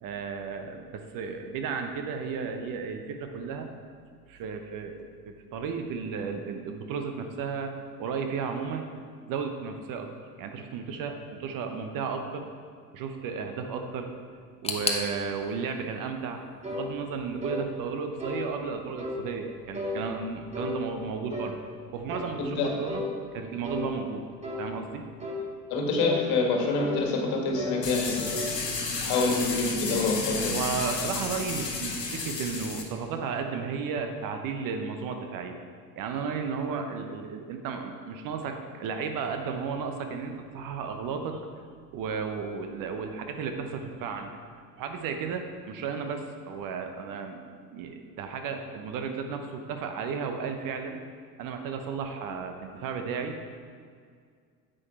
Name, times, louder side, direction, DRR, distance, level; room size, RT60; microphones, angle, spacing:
voice 1, 0.0-3.7 4.3-7.7 8.0-8.9 9.3-10.1 10.4-12.5 12.9-14.1 14.6-16.4 16.7-21.5 21.9-23.0 23.3-24.2 24.6-25.0 30.5-35.5 36.0-41.4 41.9-44.3 44.8-47.4 47.7-51.0 51.4-53.3, right 5 dB, 45° right, 5 dB, 1.0 m, -34 dB
sound 1, 14.6-17.5 17.8-18.6 18.9-19.0 19.8-19.9, left 3 dB, 15° left, 1.0 m, -36 dB
sound 2, 16.6-16.9 17.4-17.6 18.2-18.4 19.0-19.2 19.7-20.0 20.5-20.8 21.3-21.6 22.1-22.3 22.9-23.1 23.6-23.9 24.4-24.7 25.2-25.4 26.0-26.2 26.8-27.0 27.5-27.8 28.1-28.6, left 2 dB, 15° right, 2.1 m, -34 dB
voice 2, 22.4-22.7 25.7-28.3 29.0-30.5, left 3 dB, 50° left, 1 dB, 1.9 m, -26 dB
sound 3, 27.8-32.8, left 4 dB, 85° left, 1.1 m, -32 dB
9.8 x 7.9 x 4.4 m, 2.1 s
figure-of-eight pair, 65°, 48 cm